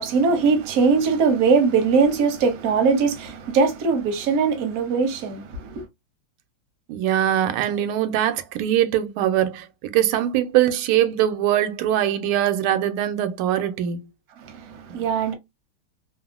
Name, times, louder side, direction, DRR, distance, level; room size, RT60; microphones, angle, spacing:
voice 1, 0.0-5.9 14.4-15.3, right 5 dB, 60° right, 0.9 m, -21 dB
voice 2, 6.9-14.0, right 11 dB, 90° right, 1.5 m, -22 dB
3.5 x 2.0 x 2.4 m
omnidirectional pair, 2.3 m